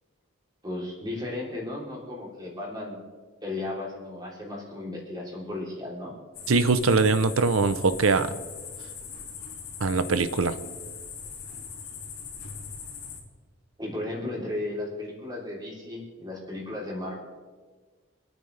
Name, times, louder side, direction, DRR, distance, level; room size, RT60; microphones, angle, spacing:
voice 1, 0.6-3.0 3.4-6.1 13.8-17.1, left 2 dB, 20° right, -3 dB, 3.3 m, -35 dB
sound 1, 6.3-13.2, left 6 dB, 80° left, 3.5 m, -40 dB
voice 2, 6.5-8.3 9.8-10.6, right 4 dB, 70° right, 13 dB, 0.7 m, -22 dB
26.0 x 9.2 x 3.3 m, 1.4 s
head